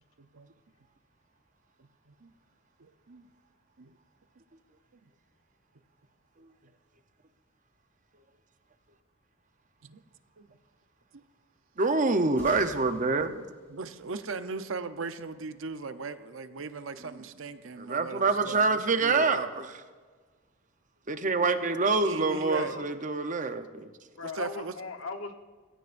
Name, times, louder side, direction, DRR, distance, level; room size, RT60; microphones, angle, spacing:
voice 1, 0.2-0.5 1.8-2.3 2.8-3.2 3.8-3.9 9.8-10.0 10.4-10.5 13.1-13.4 13.7-19.5 22.0-22.8 24.2-24.7, right 4 dB, 70° right, 10 dB, 0.7 m, -38 dB
voice 2, 11.8-13.4 17.8-19.7 21.1-23.9, right 3 dB, 40° right, 9 dB, 0.8 m, -26 dB
sound 1, 12.4-15.2, equal, 10° left, 4.9 m, -52 dB
voice 3, 22.2-22.9 24.2-25.3, left 4 dB, 75° left, 6 dB, 1.2 m, -39 dB
21.5 x 16.0 x 2.6 m, 1.5 s
head